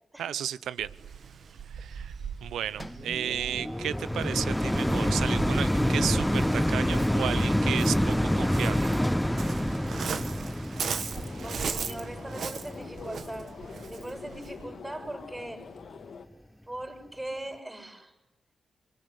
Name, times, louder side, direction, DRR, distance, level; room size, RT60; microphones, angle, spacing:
voice 1, 0.2-0.9 1.7-2.1 2.4-8.9, right 10 dB, 85° right, 17 dB, 0.9 m, -33 dB
Waves surf, 0.8-14.6, right 6 dB, 70° right, 1.8 m, -39 dB
sound 1, 2.8-14.1 14.7-14.8, equal, 5° left, 0.9 m, -27 dB
sound 2, 11.1-16.3, left 5 dB, 70° left, 2.4 m, -45 dB
voice 2, 11.4-13.5 13.9-15.7 16.7-18.1, right 1 dB, 20° right, 5 dB, 7.1 m, -40 dB
25.5 x 23.0 x 9.9 m, 1.0 s
supercardioid pair, 55°, 0 cm